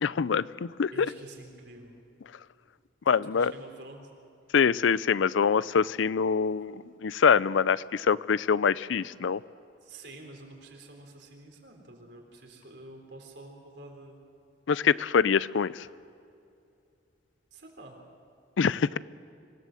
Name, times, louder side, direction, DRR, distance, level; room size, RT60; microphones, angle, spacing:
voice 1, 0.0-1.1 3.1-3.5 4.5-9.4 14.7-15.9 18.6-19.0, left 6 dB, 85° left, 19 dB, 0.5 m, -25 dB
voice 2, 0.9-2.0 3.1-4.0 9.8-14.2 17.5-18.0, right 2 dB, 60° right, 2 dB, 3.8 m, -48 dB
26.0 x 17.5 x 7.7 m, 2.5 s
head